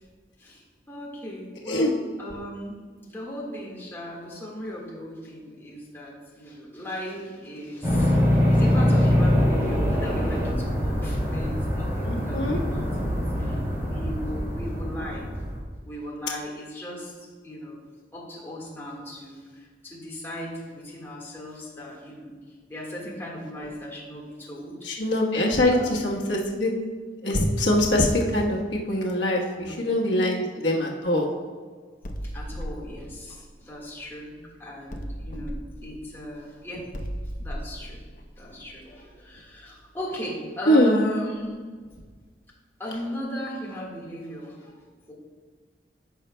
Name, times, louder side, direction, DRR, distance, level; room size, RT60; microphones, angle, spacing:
voice 1, 0.4-2.7 3.0-13.1 13.4-15.2 15.8-17.8 18.1-25.2 25.7-26.1 29.5-30.9 32.2-36.9 37.4-38.0 38.4-41.5 42.8-45.1, left 1 dB, 15° left, -5 dB, 1.6 m, -38 dB
sound 1, 7.8-15.6, left 1 dB, 15° right, 2.2 m, -23 dB
voice 2, 12.0-12.6 24.8-26.7 27.2-31.3 40.7-41.1, left 1 dB, 80° left, -2 dB, 1.2 m, -23 dB
sound 2, 32.0-34.4 34.9-39.6, equal, 45° left, 0.8 m, -37 dB
14.5 x 5.6 x 2.2 m, 1.5 s
head